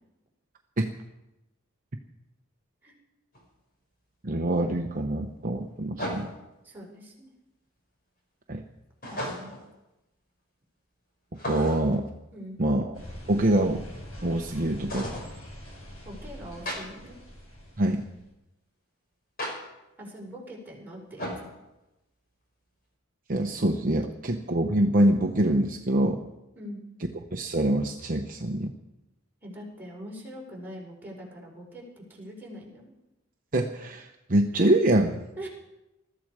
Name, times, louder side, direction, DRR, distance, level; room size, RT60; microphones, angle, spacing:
sound 1, 3.3-3.4 6.0-6.5 9.0-9.7 11.3-12.0 14.9-15.3 16.7-16.8 19.4-19.5 21.2-21.5, equal, 40° left, 5.2 m, -34 dB
voice 1, 4.2-6.3 8.5-8.6 11.4-12.1 12.6-12.9 13.3-13.8 14.2-15.1 17.8-18.1 23.3-26.2 27.3-28.7 33.5-35.2, right 1 dB, 40° right, 3 dB, 0.9 m, -25 dB
voice 2, 6.6-7.3 9.1-9.5 12.3-12.6 16.0-17.2 20.0-21.4 26.5-26.8 29.4-32.9 35.4-35.5, equal, 10° right, -4 dB, 4.8 m, -42 dB
sound 2, 12.9-18.2, equal, 75° left, 7.0 m, -44 dB
21.0 x 14.0 x 4.9 m, 0.96 s
head